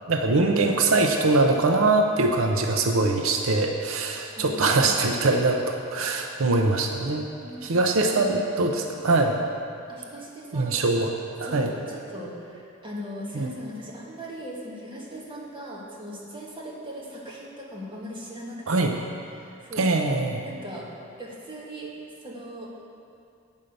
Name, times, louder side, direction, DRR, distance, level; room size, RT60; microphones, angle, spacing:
voice 1, 0.1-7.3 7.6-9.4 10.5-11.1 11.4-11.7 13.3-13.5 18.7-18.9 19.8-20.4, right 3 dB, 85° right, 4 dB, 0.6 m, -22 dB
voice 2, 4.3-5.0 7.4-8.7 9.9-11.0 11.4-19.0 19.3-19.9 20.4-20.9 21.2-21.9 22.2-22.7, equal, 25° right, -4 dB, 1.4 m, -39 dB
8.8 x 5.4 x 6.6 m, 2.5 s
head